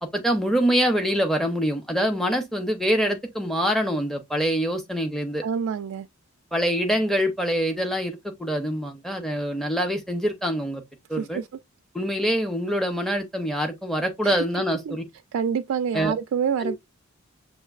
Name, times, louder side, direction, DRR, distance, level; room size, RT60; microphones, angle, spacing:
voice 1, 0.0-5.4 6.5-10.8 11.1-11.4 11.9-15.0 15.9-16.1 16.6-16.7, equal, ahead, 0.6 m, -25 dB
voice 2, 5.4-6.1 11.1-11.5 14.2-14.4 14.9-15.0 15.3-16.8, right 7 dB, 75° right, 0.3 m, -27 dB
6.3 x 2.5 x 2.4 m
head